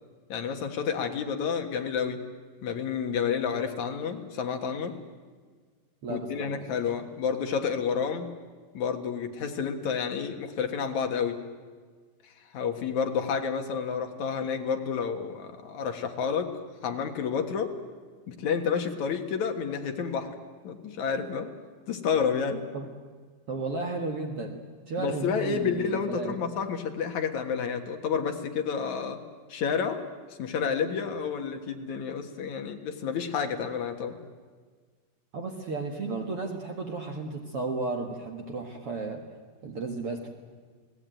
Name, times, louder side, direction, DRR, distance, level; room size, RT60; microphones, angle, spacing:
voice 1, 0.3-2.2 2.6-4.9 6.1-8.3 8.7-11.4 12.2-16.5 16.8-17.7 18.3-20.3 20.6-21.5 21.9-22.6 25.0-29.2 29.5-30.0 30.4-34.2, left 6 dB, 60° left, 5 dB, 2.6 m, -30 dB
voice 2, 6.0-6.8 22.7-22.9 23.5-24.6 24.9-26.4 35.3-39.2 39.6-40.3, right 3 dB, 50° right, 3 dB, 2.0 m, -34 dB
28.5 x 19.0 x 9.1 m, 1.5 s
omnidirectional pair, 4.3 m